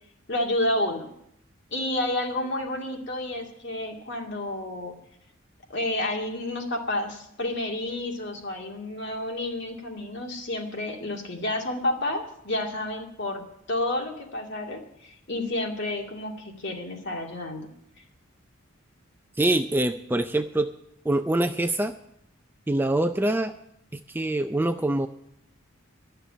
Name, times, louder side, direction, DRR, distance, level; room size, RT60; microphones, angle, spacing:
voice 1, 0.3-1.1 1.7-4.9 5.7-13.4 13.7-17.7, left 1 dB, 55° left, 1 dB, 2.4 m, -30 dB
voice 2, 19.4-20.7 21.1-21.9 22.7-23.5 23.9-25.1, right 1 dB, 10° right, 7 dB, 0.4 m, -24 dB
12.5 x 6.7 x 10.0 m, 0.74 s
head